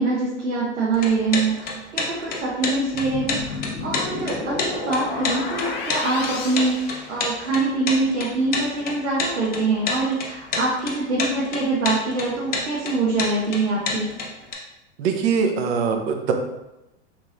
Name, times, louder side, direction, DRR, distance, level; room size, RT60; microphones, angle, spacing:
voice 1, 0.0-14.1, right 3 dB, 90° right, -6 dB, 0.9 m, -24 dB
sound 1, 0.9-14.5, left 4 dB, 25° left, 0.8 m, -28 dB
sound 2, 2.9-7.7, left 3 dB, 55° left, 0.7 m, -32 dB
voice 2, 15.0-16.3, right 6 dB, 60° right, 4 dB, 0.7 m, -22 dB
3.7 x 3.1 x 2.5 m, 0.95 s
hypercardioid pair, 100°, 35 cm